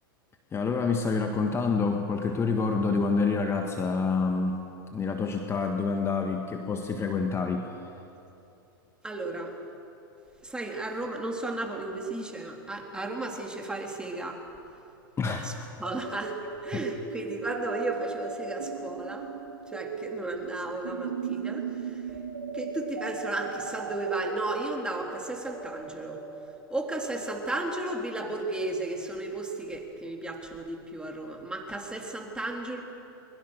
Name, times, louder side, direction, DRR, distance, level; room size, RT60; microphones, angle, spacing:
voice 1, 0.5-4.6 4.9-7.7 15.2-15.5, left 4 dB, 20° left, 4 dB, 1.6 m, -27 dB
voice 2, 9.0-9.6 10.4-14.4 15.3-15.5 15.8-19.3 19.7-22.2 22.5-26.2 26.7-32.8, right 2 dB, 5° right, 1 dB, 3.4 m, -34 dB
sound 1, 15.8-27.7, right 5 dB, 80° right, 2.3 m, -38 dB
22.5 x 22.0 x 6.5 m, 2.8 s
hypercardioid pair, 100°, 12 cm